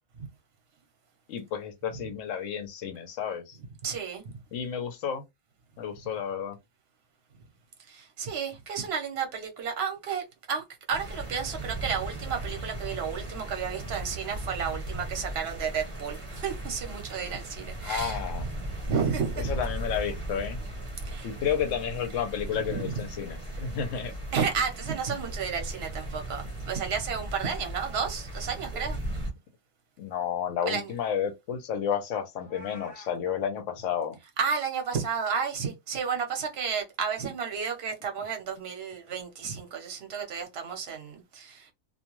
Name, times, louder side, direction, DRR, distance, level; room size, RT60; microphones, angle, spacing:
voice 1, 1.3-3.6 4.5-5.2 5.8-6.6 17.8-18.5 19.4-20.6 21.2-24.1 30.0-34.2, left 8 dB, 70° left, 1.0 m, -31 dB
voice 2, 3.8-4.2 7.9-18.2 18.9-19.4 21.0-21.3 22.7-22.9 24.3-29.0 30.7-30.9 34.4-41.7, right 6 dB, 55° right, 1.0 m, -32 dB
sound 1, 10.9-29.3, right 1 dB, 25° right, 0.8 m, -37 dB
Meow, 32.3-33.2, equal, 30° left, 0.8 m, -48 dB
2.5 x 2.2 x 3.0 m
omnidirectional pair, 1.4 m